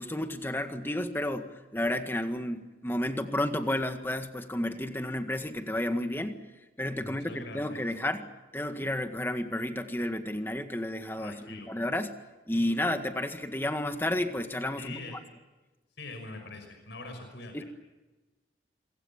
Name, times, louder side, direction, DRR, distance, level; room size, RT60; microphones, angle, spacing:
voice 1, 0.0-6.4 6.8-8.3 8.5-12.2 12.5-14.9 17.5-17.6, left 1 dB, 10° left, 7 dB, 1.7 m, -31 dB
voice 2, 7.0-7.9 11.2-11.7 14.8-15.2 16.0-17.6, left 2 dB, 90° left, 5 dB, 5.7 m, -43 dB
26.5 x 23.5 x 7.2 m, 1.1 s
head